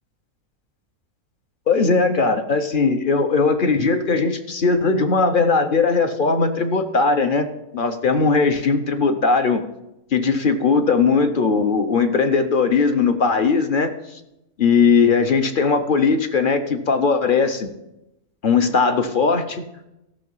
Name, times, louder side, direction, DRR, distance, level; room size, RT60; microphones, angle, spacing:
voice 1, 1.7-9.6 10.1-13.9 14.6-17.7 18.4-19.7, left 4 dB, 45° left, 7 dB, 0.8 m, -19 dB
14.5 x 6.2 x 5.5 m, 0.89 s
omnidirectional pair, 1.5 m